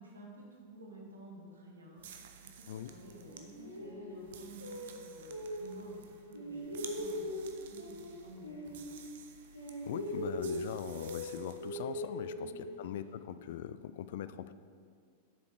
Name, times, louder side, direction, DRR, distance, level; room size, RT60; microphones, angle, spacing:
voice 1, 0.0-6.0 6.2-8.9 12.4-12.6, right 1 dB, 75° right, -2 dB, 2.0 m, -52 dB
sound 1, 2.0-11.9, right 7 dB, 55° right, 0.8 m, -53 dB
sound 2, 3.3-6.0 6.3-9.3 9.5-13.1, equal, 85° left, 1.6 m, -41 dB
voice 2, 9.8-12.5 12.8-14.5, left 10 dB, 55° left, 14 dB, 0.4 m, -41 dB
7.9 x 7.0 x 6.2 m, 2.1 s
figure-of-eight pair, 90°, 0 cm